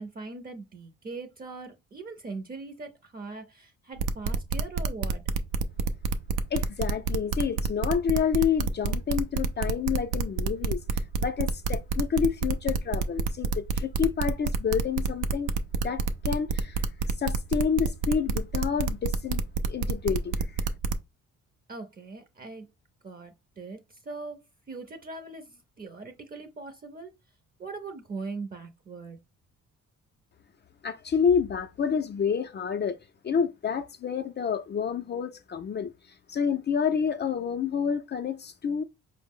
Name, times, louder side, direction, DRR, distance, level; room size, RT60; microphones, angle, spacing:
voice 1, 0.0-5.2 21.7-22.7 23.0-27.1 27.6-29.2, right 3 dB, 30° right, 0.6 m, -41 dB
sound 1, 4.0-21.0, right 5 dB, 85° right, 0.5 m, -28 dB
voice 2, 6.5-15.5 15.8-16.8 17.2-19.4 19.7-20.6 30.8-33.0 33.2-35.9 36.3-38.8, left 7 dB, 35° left, 0.4 m, -28 dB
4.5 x 2.0 x 3.6 m
cardioid pair, 90°, 30 cm